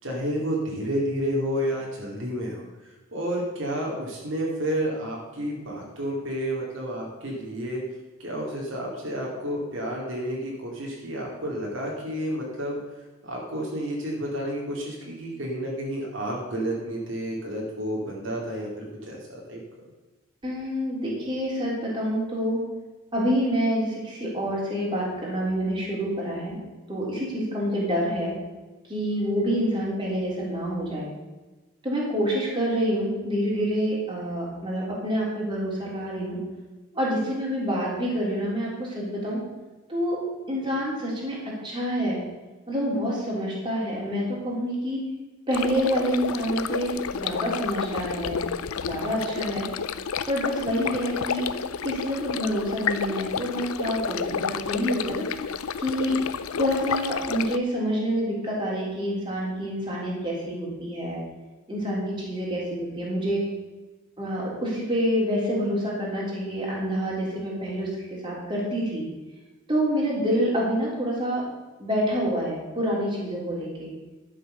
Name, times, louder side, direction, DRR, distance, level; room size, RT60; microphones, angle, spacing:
voice 1, 0.0-7.8 8.2-12.8 13.2-19.6, equal, 65° right, -2 dB, 2.4 m, -30 dB
voice 2, 20.4-22.6 23.1-26.6 26.9-28.3 28.9-31.1 31.8-36.4 36.9-39.4 39.9-40.2 40.5-41.4 41.6-42.2 42.7-45.0 45.5-48.4 48.9-49.7 50.3-51.5 51.8-55.5 55.8-56.2 56.5-61.2 61.7-63.4 64.2-69.0 69.7-71.4 71.8-73.9, equal, 20° right, -5 dB, 3.5 m, -27 dB
sound 1, 45.5-57.6, left 6 dB, 90° left, 0.5 m, -30 dB
11.5 x 6.5 x 6.6 m, 1.2 s
head